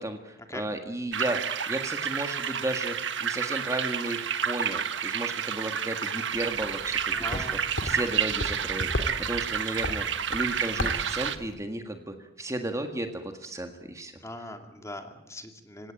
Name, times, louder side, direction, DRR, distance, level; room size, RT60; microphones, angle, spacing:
voice 1, 0.0-3.0 3.2-7.6 7.8-14.1, right 1 dB, 15° right, 5 dB, 1.8 m, -34 dB
sound 1, 1.1-11.4, right 7 dB, 75° right, 1.4 m, -30 dB
sound 2, 6.3-11.5, left 1 dB, 85° left, 2.8 m, -36 dB
voice 2, 7.1-7.9 9.1-9.2 14.2-15.9, left 1 dB, 15° left, 6 dB, 2.5 m, -41 dB
25.5 x 18.0 x 9.0 m, 0.90 s
head